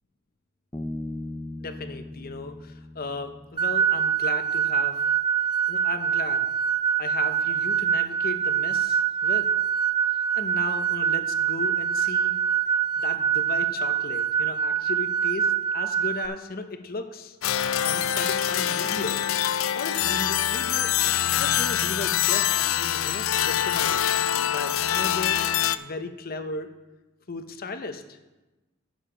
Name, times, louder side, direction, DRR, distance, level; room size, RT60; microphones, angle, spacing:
Bass guitar, 0.7-4.2, left 1 dB, 15° left, 0.7 m, -38 dB
voice 1, 1.6-5.0 5.7-6.5 7.0-9.5 10.2-12.3 13.0-17.4 17.8-19.2 19.7-24.2 24.5-25.4 25.8-26.7 27.3-28.2, left 3 dB, 45° left, 8 dB, 0.8 m, -36 dB
sound 1, 3.6-16.3, right 8 dB, 20° right, 0.4 m, -24 dB
sound 2, 17.4-25.8, left 10 dB, 80° left, 0.4 m, -24 dB
10.5 x 6.5 x 5.0 m, 1.1 s
head